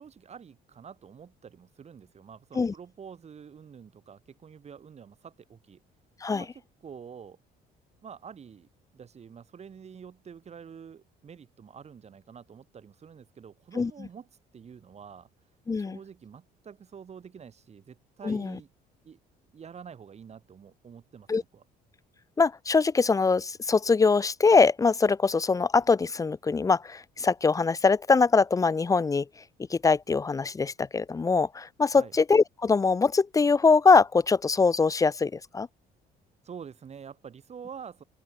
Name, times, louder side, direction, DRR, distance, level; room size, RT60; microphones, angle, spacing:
voice 1, 0.0-5.8 6.3-7.4 8.0-14.3 14.5-15.3 15.8-18.7 19.0-19.2 19.5-21.6 31.9-32.1 36.4-38.0, right 7 dB, 40° right, 7.0 m, -47 dB
voice 2, 15.7-16.0 18.2-18.6 21.3-21.4 22.4-29.3 29.7-35.7, left 4 dB, 20° left, 0.6 m, -23 dB
open air
cardioid pair, 110°, 17 cm